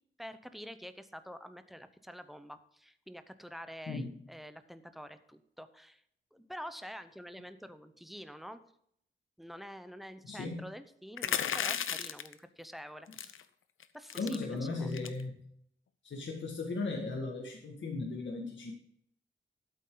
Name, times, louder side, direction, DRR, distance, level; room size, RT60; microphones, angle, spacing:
voice 1, 0.2-6.0 6.3-8.6 9.4-13.4 13.9-14.9, equal, ahead, 11 dB, 0.8 m, -47 dB
voice 2, 10.2-10.7 14.1-15.4 16.0-18.7, left 3 dB, 70° left, 0 dB, 1.9 m, -37 dB
sound 1, 11.2-12.3 13.1-13.4 13.8-13.9 14.1-14.4 14.9-15.2, left 8 dB, 90° left, 0.7 m, -34 dB
12.5 x 8.1 x 3.9 m, 0.70 s
wide cardioid pair, 130°, 20 cm